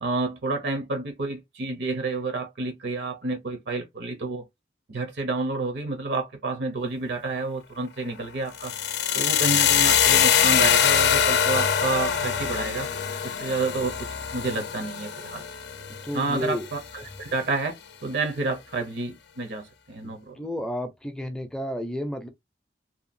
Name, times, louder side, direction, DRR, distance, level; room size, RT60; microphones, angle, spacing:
voice 1, 0.0-4.4 4.9-8.7 9.1-12.9 13.2-14.0 14.3-15.4 16.1-20.4, right 3 dB, 70° right, 0.7 m, -29 dB
sound 1, 8.5-16.6, left 8 dB, 70° left, 0.4 m, -23 dB
voice 2, 16.0-16.7 20.0-22.3, left 1 dB, 5° left, 0.4 m, -32 dB
2.8 x 2.2 x 2.5 m
head